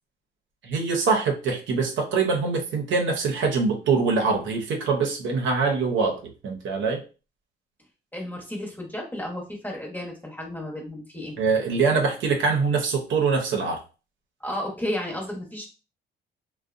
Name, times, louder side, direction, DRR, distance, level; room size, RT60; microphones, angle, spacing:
voice 1, 0.6-7.0 11.4-13.8, right 4 dB, 75° right, 2 dB, 0.7 m, -24 dB
voice 2, 8.1-11.4 14.4-15.7, left 1 dB, 10° left, -1 dB, 0.9 m, -33 dB
2.6 x 2.1 x 2.4 m, 0.33 s
cardioid pair, 90°, 20 cm